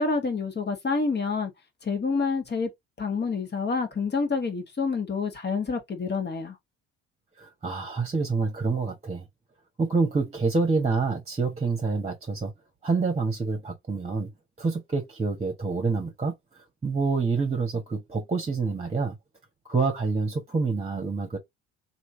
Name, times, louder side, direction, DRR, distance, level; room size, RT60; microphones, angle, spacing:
voice 1, 0.0-1.5 1.8-2.7 3.0-6.6, left 4 dB, 30° left, 1.7 m, -28 dB
voice 2, 7.4-9.3 9.8-12.5 12.8-14.3 14.6-16.3 16.8-19.2 19.7-21.4, right 4 dB, 20° right, 1.4 m, -27 dB
3.1 x 2.9 x 2.8 m
hypercardioid pair, 60°, 32 cm